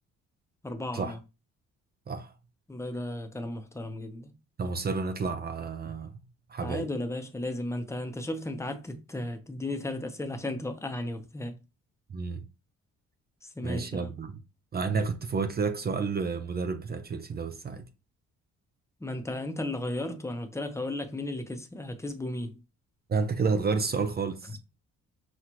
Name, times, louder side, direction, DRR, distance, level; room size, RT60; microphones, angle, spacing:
voice 1, 0.6-1.2 2.7-4.3 6.6-11.6 13.6-14.2 19.0-22.6, left 1 dB, 10° left, 0.7 m, -35 dB
voice 2, 4.6-6.1 6.5-6.9 12.1-12.4 13.6-14.4 14.7-17.9 23.1-24.6, right 4 dB, 30° right, 0.5 m, -30 dB
6.0 x 2.4 x 2.9 m
cardioid pair, 90°, 30 cm